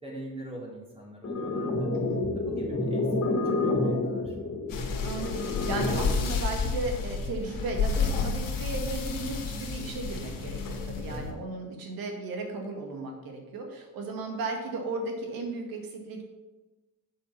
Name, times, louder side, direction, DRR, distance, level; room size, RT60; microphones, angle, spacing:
voice 1, 0.0-1.9 2.3-3.2 3.6-4.5 8.7-9.0 11.0-11.3, right 1 dB, 15° right, -3 dB, 3.2 m, -43 dB
sound 1, 1.2-6.2, left 2 dB, 50° left, 2.1 m, -29 dB
sound 2, 4.7-11.3, left 5 dB, 70° left, 1.7 m, -31 dB
voice 2, 5.0-16.2, right 3 dB, 80° right, 3 dB, 1.9 m, -35 dB
7.5 x 5.6 x 5.8 m, 1.1 s
cardioid pair, 80°, 35 cm